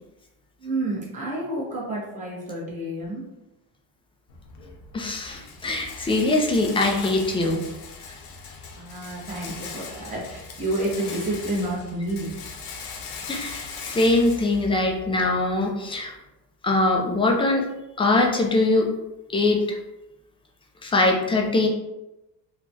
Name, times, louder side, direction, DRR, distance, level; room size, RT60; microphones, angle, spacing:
voice 1, 0.6-3.2 8.7-12.3, right 1 dB, 20° right, -6 dB, 1.1 m, -29 dB
Rattle, 4.3-15.3, left 5 dB, 90° left, 0.6 m, -39 dB
voice 2, 4.9-7.6 13.3-16.1 16.6-17.6 18.0-18.9 19.3-19.6 20.8-21.7, left 2 dB, 15° left, 1 dB, 0.3 m, -22 dB
3.1 x 2.3 x 2.7 m, 0.94 s
cardioid pair, 115°, 38 cm